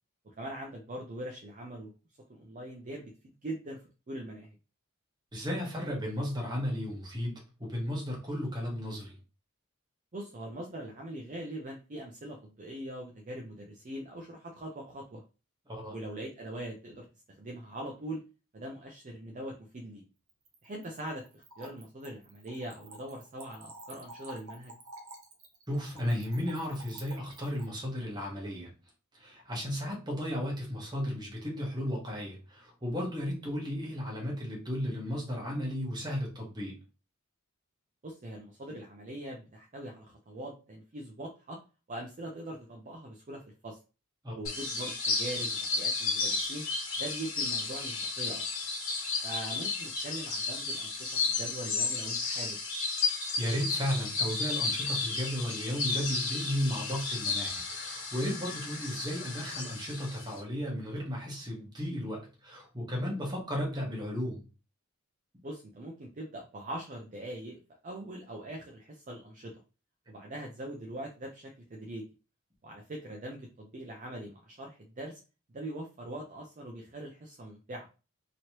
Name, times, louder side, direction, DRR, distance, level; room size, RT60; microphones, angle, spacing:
voice 1, 0.2-1.9 2.3-4.5 10.1-15.2 15.9-18.2 18.5-20.0 20.6-24.8 38.0-41.6 41.9-43.8 44.3-46.7 47.0-48.4 49.2-52.6 65.4-67.6 67.8-69.5 70.1-72.1 72.6-75.2 75.5-77.9, right 1 dB, 35° right, 0 dB, 0.5 m, -42 dB
voice 2, 5.3-9.1 15.7-15.9 25.7-28.7 29.2-36.8 44.2-44.4 53.4-64.4, equal, 20° right, -2 dB, 1.1 m, -34 dB
Splash splatter / Trickle dribble, 20.3-27.7, right 2 dB, 90° right, 0.9 m, -50 dB
sound 1, 44.4-60.4, left 4 dB, 75° left, 1.1 m, -33 dB
3.0 x 2.9 x 2.9 m, 0.33 s
head